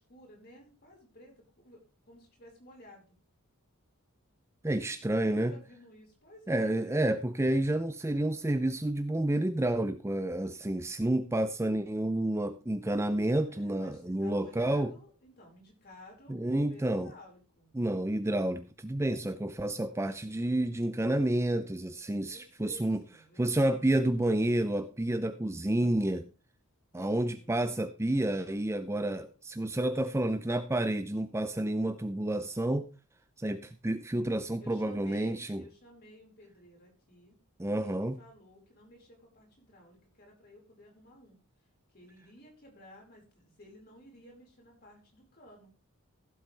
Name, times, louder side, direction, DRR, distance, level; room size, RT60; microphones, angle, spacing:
voice 1, 0.0-3.2 4.7-6.8 13.4-17.7 22.2-23.9 26.9-27.7 34.6-37.3 37.7-41.4 41.9-45.7, left 1 dB, 45° left, -1 dB, 4.9 m, -55 dB
voice 2, 4.6-5.5 6.5-14.9 16.3-17.1 17.7-23.0 23.4-26.3 26.9-32.9 33.4-35.6 37.6-38.2, right 1 dB, 10° right, 10 dB, 0.5 m, -30 dB
15.5 x 7.8 x 3.3 m, 0.32 s
head